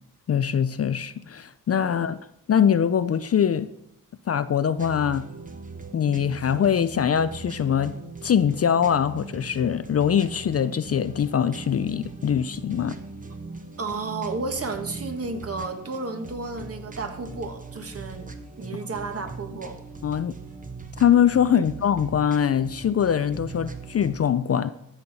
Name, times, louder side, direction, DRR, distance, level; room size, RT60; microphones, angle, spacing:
voice 1, 0.3-2.2 2.5-3.7 4.3-5.3 5.9-7.9 8.2-13.0 20.0-20.3 21.0-24.7, left 8 dB, 45° left, 13 dB, 0.5 m, -23 dB
sound 1, 4.8-24.2, right 3 dB, 25° right, 1.0 m, -40 dB
voice 2, 13.8-18.3 18.6-19.8 21.5-21.6, right 3 dB, 40° right, 5 dB, 1.5 m, -32 dB
13.0 x 7.3 x 4.1 m, 0.75 s
cardioid pair, 105°, 35 cm